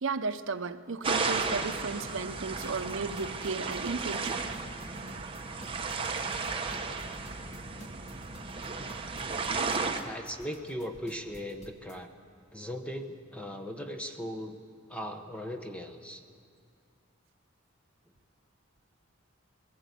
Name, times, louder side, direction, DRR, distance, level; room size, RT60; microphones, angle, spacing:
voice 1, 0.0-4.4, right 4 dB, 65° right, 0.7 m, -34 dB
sound 1, 1.0-10.0, right 4 dB, 25° right, 1.1 m, -34 dB
sound 2, 2.6-12.0, equal, 35° left, 1.7 m, -53 dB
voice 2, 10.0-12.1 12.5-14.6 14.9-16.2, equal, 5° left, 1.0 m, -38 dB
20.5 x 16.5 x 8.4 m
head